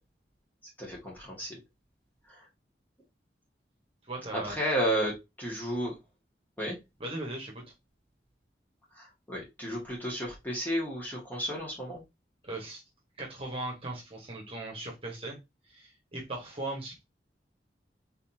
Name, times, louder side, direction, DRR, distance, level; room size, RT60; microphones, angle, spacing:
voice 1, 0.8-1.6 2.3-2.4 4.3-5.9 6.6-6.8 9.0-12.0, equal, 10° left, 1.9 m, -32 dB
voice 2, 4.1-4.6 7.0-7.6 12.4-12.8 13.2-15.4 15.7-17.0, right 2 dB, 30° right, 1.5 m, -38 dB
4.2 x 4.1 x 2.8 m
head